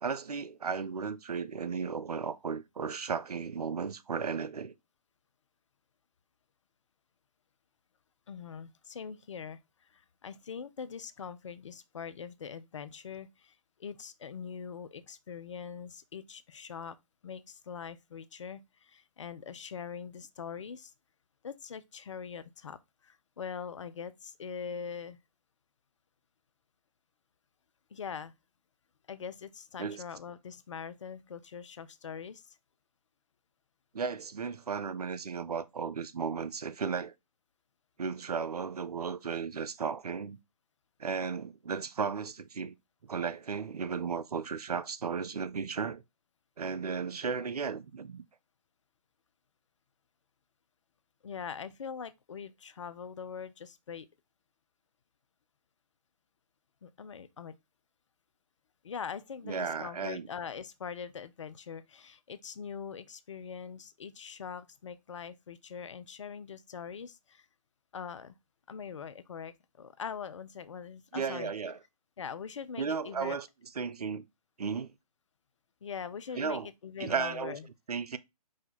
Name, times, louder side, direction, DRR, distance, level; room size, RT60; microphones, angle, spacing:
voice 1, 0.0-4.7 29.8-30.0 33.9-37.1 38.0-40.4 41.0-42.7 43.0-46.0 46.6-48.3 59.5-60.3 71.1-71.8 72.8-73.5 73.8-74.2 74.6-74.9 76.3-76.7 77.0-77.6 77.9-78.2, right 5 dB, 70° right, 0.5 m, -35 dB
voice 2, 8.3-17.0 17.2-20.9 21.4-25.2 27.9-28.3 29.1-32.6 51.2-54.1 56.8-57.6 58.8-67.5 67.9-68.3 68.7-71.5 72.2-73.4 75.8-77.6, left 6 dB, 50° left, 0.4 m, -42 dB
4.8 x 2.2 x 4.0 m
figure-of-eight pair, 135°, 20 cm